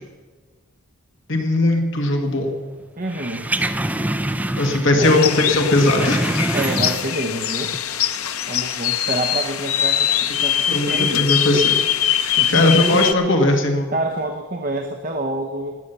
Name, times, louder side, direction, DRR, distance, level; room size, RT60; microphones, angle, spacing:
voice 1, 1.3-2.5 4.6-6.3 10.7-11.7 12.5-13.9, left 1 dB, 60° left, 3 dB, 1.7 m, -18 dB
voice 2, 3.0-3.5 5.0-5.4 6.5-7.8 8.5-11.3 12.4-13.1 13.9-15.8, right 1 dB, 40° right, 4 dB, 0.9 m, -27 dB
sound 1, 3.1-5.0 5.3-7.3 7.7-7.8, right 1 dB, 5° right, 0.5 m, -25 dB
sound 2, 5.0-13.1, left 10 dB, 90° left, 0.8 m, -22 dB
20.0 x 8.4 x 6.8 m, 1.5 s
head